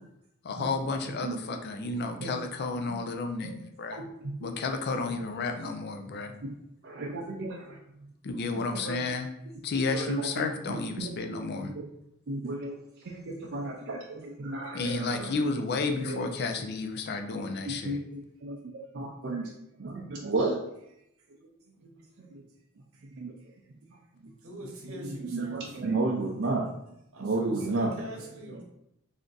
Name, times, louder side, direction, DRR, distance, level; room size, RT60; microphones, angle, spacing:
voice 1, 0.4-4.0 4.4-6.3 8.2-9.3 9.6-11.7 14.7-18.0, left 3 dB, 50° left, 5 dB, 0.4 m, -32 dB
voice 2, 3.9-4.5 6.4-6.5 6.8-7.8 8.5-9.0 9.9-10.4 10.7-11.8 12.3-12.8 13.0-15.4 16.0-16.2 17.4-19.5 19.8-20.6 21.8-21.9 22.2-22.4 23.1-23.3 25.0-26.7 27.2-27.9 28.5-28.6, right 2 dB, 55° right, -2 dB, 0.5 m, -33 dB
voice 3, 24.4-25.8 27.1-28.6, right 1 dB, 90° right, 0 dB, 0.9 m, -44 dB
3.4 x 2.5 x 3.8 m, 0.80 s
head